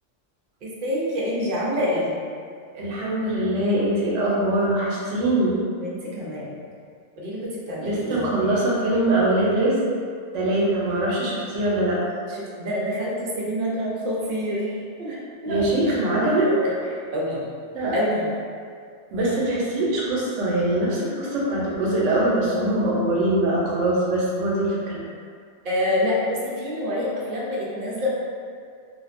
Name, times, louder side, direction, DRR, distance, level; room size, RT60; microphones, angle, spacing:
voice 1, 0.6-2.2 5.8-6.5 7.2-7.4 7.7-8.4 12.3-15.6 16.4-16.7 17.1-17.5 17.9-18.3 25.6-28.1, left 1 dB, 55° right, -6 dB, 0.7 m, -27 dB
voice 2, 2.7-5.6 7.8-9.8 10.3-12.0 15.4-16.5 17.7-18.0 19.1-25.0, right 1 dB, 90° right, -5 dB, 0.9 m, -22 dB
2.5 x 2.1 x 2.5 m, 2.2 s
omnidirectional pair, 1.2 m